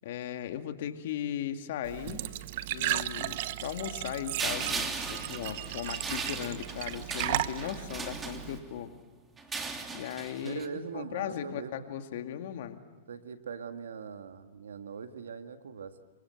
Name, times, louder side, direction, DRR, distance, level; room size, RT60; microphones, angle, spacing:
voice 1, 0.0-2.2 2.7-8.9 9.9-12.8, left 10 dB, 65° left, 7 dB, 2.3 m, -37 dB
Glass / Trickle dribble / Fill (with liquid), 1.8-8.6, right 14 dB, 60° right, 1.0 m, -35 dB
sound 1, 4.4-8.8 9.4-10.7, right 4 dB, 15° right, 3.0 m, -38 dB
voice 2, 10.4-11.8 13.1-16.0, right 6 dB, 85° right, 8 dB, 1.8 m, -41 dB
27.5 x 24.0 x 7.8 m, 1.2 s
hypercardioid pair, 120°, 0 cm